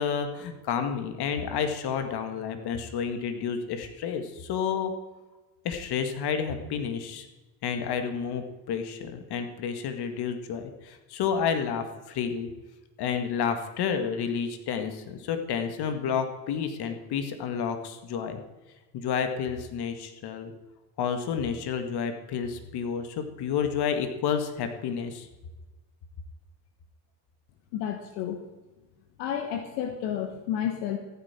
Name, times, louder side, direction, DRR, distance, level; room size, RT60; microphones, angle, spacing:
voice 1, 0.0-4.9 5.6-7.3 7.6-12.5 13.0-18.4 18.9-20.5 21.0-25.3, left 7 dB, 50° left, 7 dB, 2.0 m, -30 dB
voice 2, 27.7-28.4 29.2-31.0, left 9 dB, 75° left, 5 dB, 1.6 m, -31 dB
14.5 x 9.7 x 4.5 m, 1.1 s
supercardioid pair, 90°, 48 cm